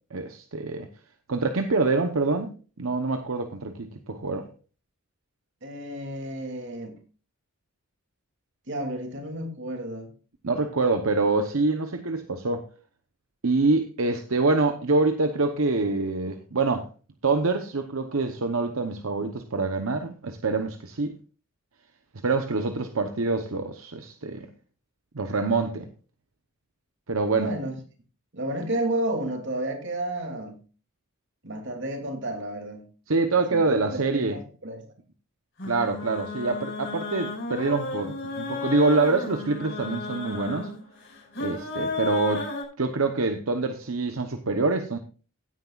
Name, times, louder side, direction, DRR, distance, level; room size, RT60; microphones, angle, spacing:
voice 1, 0.1-0.9 1.3-4.4 10.4-12.6 13.4-16.9 17.2-21.2 22.2-24.5 25.1-25.9 27.1-27.5 33.1-34.4 35.6-40.7 41.4-42.4 42.8-45.0, right 3 dB, 75° right, 7 dB, 0.9 m, -25 dB
voice 2, 5.6-7.0 8.7-10.1 27.4-27.7 28.3-30.6 31.4-32.8 33.5-34.8, right 1 dB, 60° right, 3 dB, 2.8 m, -31 dB
sound 1, 35.6-42.6, left 3 dB, 60° left, 5.3 m, -33 dB
16.5 x 9.6 x 2.4 m, 0.35 s
head